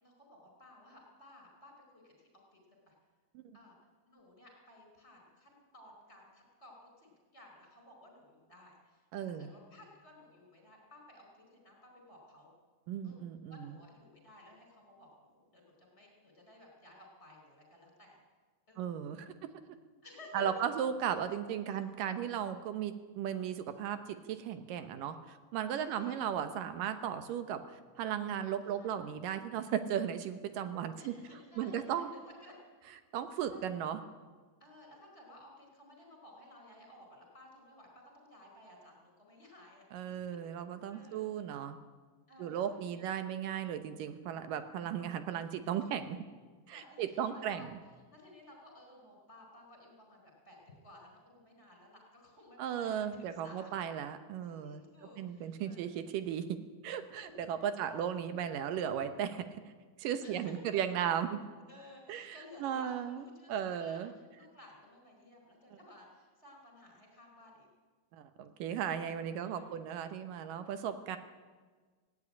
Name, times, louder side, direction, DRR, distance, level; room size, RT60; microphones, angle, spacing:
voice 1, 0.0-2.9 3.5-3.8 4.1-12.5 13.0-18.2 18.7-19.0 20.0-20.6 21.7-22.2 25.8-26.2 28.6-29.0 30.9-32.6 33.5-33.6 34.6-39.9 40.9-41.2 42.3-43.0 45.8-45.9 46.7-47.7 48.1-53.7 54.4-55.9 57.2-58.2 60.2-60.5 60.9-61.0 61.7-64.0 64.3-67.7 69.4-69.7, left 1 dB, 15° left, 0 dB, 4.7 m, -56 dB
voice 2, 9.1-9.5 12.9-13.7 18.8-19.3 20.3-27.6 28.0-31.1 31.6-32.1 33.1-34.0 39.9-41.8 42.4-46.2 46.7-47.7 52.6-54.8 55.2-56.6 56.8-59.5 60.0-61.3 62.1-62.4 62.6-63.2 63.5-64.1 68.1-71.2, right 9 dB, 75° right, 10 dB, 2.5 m, -36 dB
17.0 x 16.5 x 9.9 m, 1.4 s
omnidirectional pair, 4.1 m